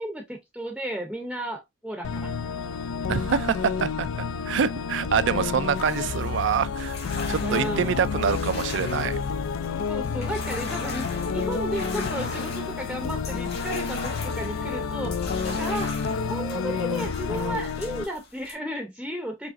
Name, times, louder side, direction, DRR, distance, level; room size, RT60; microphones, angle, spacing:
voice 1, 0.0-2.3 7.4-8.0 9.9-15.2 15.4-15.9 16.3-19.5, equal, 5° right, 0.6 m, -33 dB
sound 1, 2.0-18.0, left 5 dB, 90° left, 0.4 m, -30 dB
voice 2, 3.1-4.1 4.5-7.0 7.3-9.2, right 7 dB, 60° right, 0.3 m, -25 dB
sound 2, 5.7-18.5, left 4 dB, 50° left, 1.4 m, -39 dB
5.0 x 3.0 x 2.5 m
head